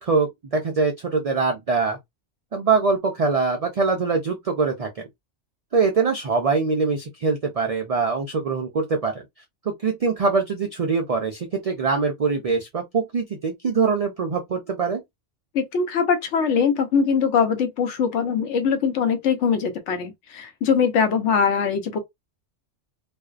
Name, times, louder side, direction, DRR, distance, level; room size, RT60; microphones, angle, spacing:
voice 1, 0.0-2.0 2.5-5.1 5.7-9.1 9.7-15.0, right 4 dB, 75° right, 0.3 m, -23 dB
voice 2, 15.5-22.0, left 6 dB, 85° left, 1.0 m, -22 dB
2.5 x 2.1 x 2.4 m
omnidirectional pair, 1.2 m